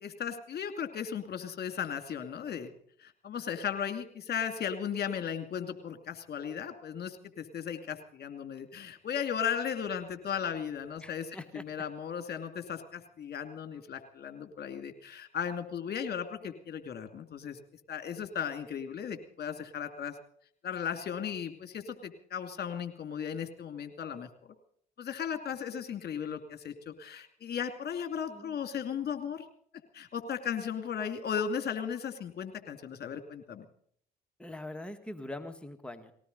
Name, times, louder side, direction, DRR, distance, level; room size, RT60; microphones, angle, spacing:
voice 1, 0.0-2.7 3.0-11.3 11.5-17.6 17.9-20.2 20.6-24.3 25.0-29.5 29.9-33.6, left 8 dB, 50° left, 7 dB, 2.5 m, -36 dB
voice 2, 11.0-11.7 28.3-28.5 34.4-36.1, left 1 dB, 5° left, 6 dB, 1.9 m, -43 dB
19.5 x 18.0 x 4.0 m, 0.62 s
hypercardioid pair, 55°, 21 cm